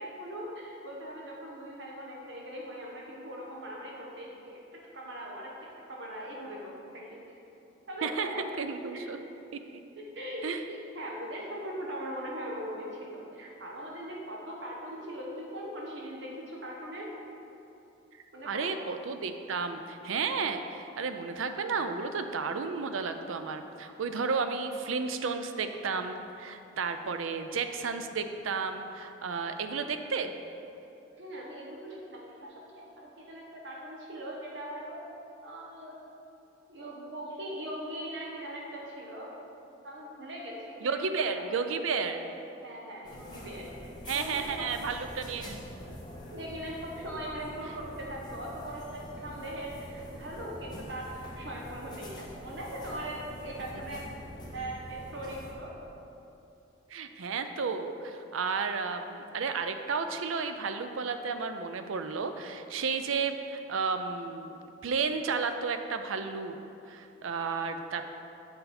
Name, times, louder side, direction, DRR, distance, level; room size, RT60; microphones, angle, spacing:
voice 1, 0.0-5.5 5.9-7.2 7.9-8.4 8.8-9.1 10.0-17.1 18.3-18.7 31.2-35.1 35.4-36.0 36.7-39.3 39.8-41.3 42.0-42.1 42.6-44.7 46.3-54.0 54.5-55.8, right 1 dB, 65° right, -2 dB, 1.0 m, -40 dB
voice 2, 8.0-9.2 10.4-10.6 18.5-30.3 40.8-42.3 44.1-45.6 56.9-66.6 66.9-68.1, right 5 dB, 90° right, 8 dB, 0.5 m, -32 dB
sound 1, 43.0-55.5, left 1 dB, 20° left, 0.9 m, -45 dB
8.0 x 5.3 x 4.2 m, 2.8 s
head